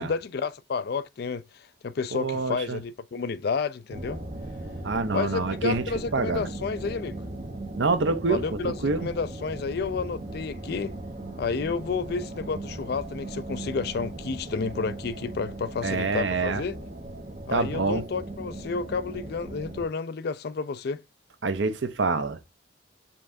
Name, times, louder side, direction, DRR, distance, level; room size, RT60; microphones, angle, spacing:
voice 1, 0.0-1.4 1.8-4.2 5.1-7.2 8.3-10.9 11.4-16.8 17.5-21.0, left 5 dB, 55° left, 0.4 m, -30 dB
voice 2, 2.1-2.8 4.8-5.8 6.1-6.5 7.8-9.1 15.8-16.6 17.5-18.0 21.4-22.4, right 4 dB, 70° right, 0.7 m, -26 dB
sound 1, 3.9-19.9, right 1 dB, 35° right, 0.9 m, -38 dB
5.3 x 3.3 x 2.5 m
head